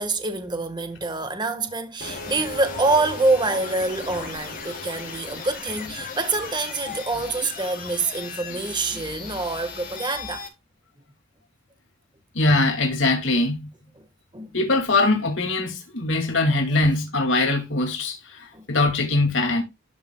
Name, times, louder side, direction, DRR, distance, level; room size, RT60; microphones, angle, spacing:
voice 1, 0.0-10.5 13.9-14.1 14.3-14.5 18.5-18.6, right 3 dB, 20° right, 1.5 m, -26 dB
sound 1, 2.0-10.5, left 4 dB, 45° left, 3.8 m, -36 dB
voice 2, 12.3-13.7 14.5-19.6, left 2 dB, 75° left, 2.4 m, -22 dB
12.5 x 6.3 x 2.3 m
head